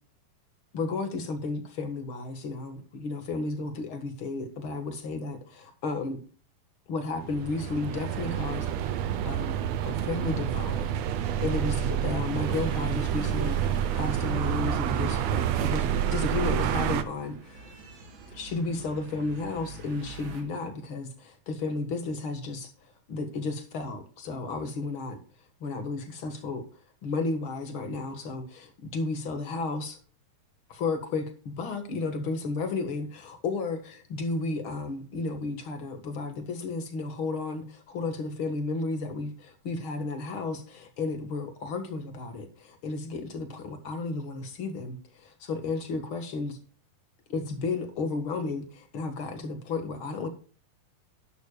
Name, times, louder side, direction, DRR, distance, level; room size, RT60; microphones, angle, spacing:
voice 1, 0.7-6.2 6.9-9.0 9.2-9.6 9.8-10.9 11.4-17.7 18.3-22.7 23.1-25.2 25.6-26.6 27.0-30.0 30.7-46.6 47.3-50.3, left 3 dB, 45° left, 1.9 m, -33 dB
sound 1, 7.2-17.0, right 10 dB, 75° right, 1.6 m, -28 dB
sound 2, 12.2-20.4, right 2 dB, 55° right, 3.2 m, -44 dB
12.0 x 11.5 x 2.3 m
omnidirectional pair, 4.1 m